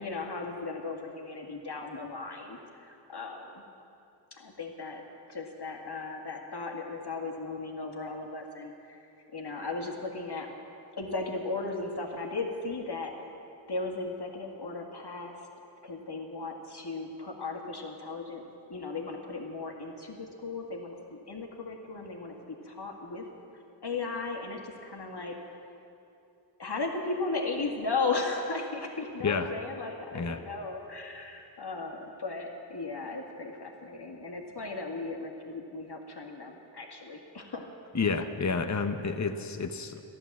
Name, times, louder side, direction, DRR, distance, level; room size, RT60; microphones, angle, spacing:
voice 1, 0.0-3.6 4.3-5.0 5.3-9.0 9.3-10.5 10.9-13.1 13.7-15.5 15.8-18.4 18.7-23.3 23.8-25.4 26.6-37.7, left 3 dB, 55° left, 1 dB, 2.0 m, -36 dB
voice 2, 37.9-40.0, left 4 dB, 35° left, 7 dB, 0.8 m, -30 dB
14.0 x 11.0 x 7.3 m, 2.7 s
wide cardioid pair, 50°, 47 cm